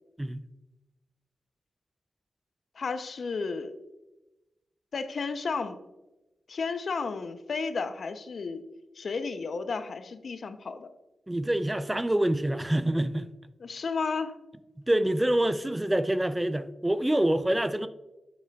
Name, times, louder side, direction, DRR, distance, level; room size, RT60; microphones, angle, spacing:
voice 1, 2.8-3.7 4.9-5.8 6.5-8.6 9.0-10.9 13.6-14.4, left 4 dB, 60° left, 10 dB, 0.6 m, -32 dB
voice 2, 11.3-13.3 14.9-17.9, right 1 dB, 15° right, 12 dB, 0.4 m, -26 dB
7.8 x 7.2 x 2.3 m, 0.99 s
cardioid pair, 80°, 0 cm